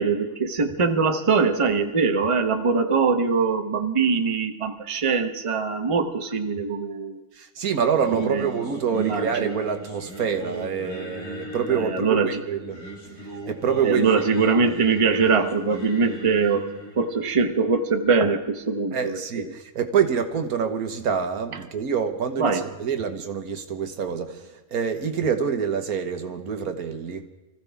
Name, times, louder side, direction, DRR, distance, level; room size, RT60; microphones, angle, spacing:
voice 1, 0.0-7.2 8.1-8.5 8.9-9.6 11.7-12.4 13.8-19.5 22.4-22.7, right 5 dB, 25° right, 6 dB, 0.9 m, -23 dB
voice 2, 7.3-12.8 13.5-14.5 18.9-22.5 22.8-27.3, right 7 dB, 80° right, 7 dB, 1.6 m, -26 dB
Singing, 7.9-19.0, equal, 55° left, 2.5 m, -39 dB
25.0 x 15.0 x 3.5 m, 1.1 s
omnidirectional pair, 1.5 m